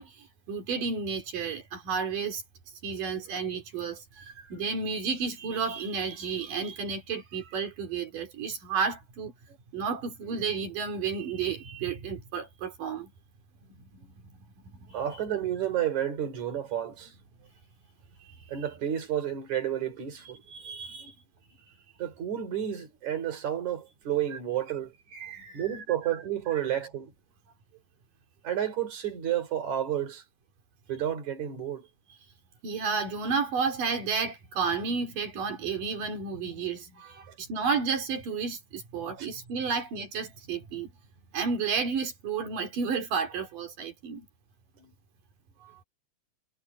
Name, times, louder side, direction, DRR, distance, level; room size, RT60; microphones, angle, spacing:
voice 1, 0.0-2.4 2.8-9.3 9.7-13.1 14.8-15.0 18.2-18.6 20.5-21.2 25.1-25.8 26.5-26.6 32.6-40.9 41.3-44.3 45.6-45.8, right 5 dB, 85° right, 5.1 m, -32 dB
voice 2, 14.9-17.1 18.5-20.4 21.0-21.1 22.0-24.9 25.5-27.1 28.4-30.2 30.9-31.8 37.3-37.4 39.2-39.3 44.8-44.9, right 10 dB, 60° right, 5.2 m, -31 dB
omnidirectional pair, 3.7 m